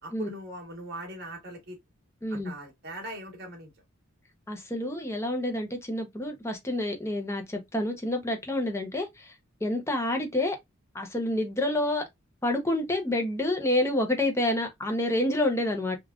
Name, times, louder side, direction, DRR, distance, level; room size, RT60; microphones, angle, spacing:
voice 1, 0.0-1.8 2.4-3.7, right 1 dB, 50° right, 1.2 m, -40 dB
voice 2, 2.2-2.5 4.5-9.3 9.6-10.6 10.9-12.0 12.4-16.0, left 1 dB, 15° left, 0.5 m, -28 dB
3.4 x 2.3 x 2.3 m
head